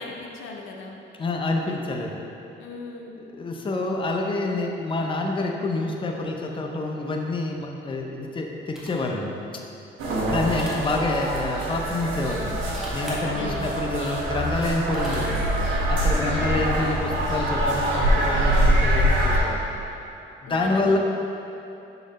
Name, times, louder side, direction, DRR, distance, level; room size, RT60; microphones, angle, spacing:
voice 1, 0.0-1.0 2.6-3.1 10.1-10.5 13.2-13.7 16.1-16.6 20.5-21.0, left 4 dB, 80° left, 1 dB, 0.6 m, -37 dB
voice 2, 1.2-2.2 3.2-9.4 10.1-12.6 12.9-15.5 15.9-19.6 20.4-21.0, left 2 dB, 25° left, 1 dB, 0.6 m, -27 dB
sound 1, 8.7-9.1 10.4-10.9 12.5-13.2 14.6-15.5, equal, ahead, 1.3 m, -41 dB
sound 2, 10.0-19.4, right 1 dB, 80° right, 1.2 m, -24 dB
6.1 x 4.0 x 4.1 m, 2.8 s
cardioid pair, 90°, 20 cm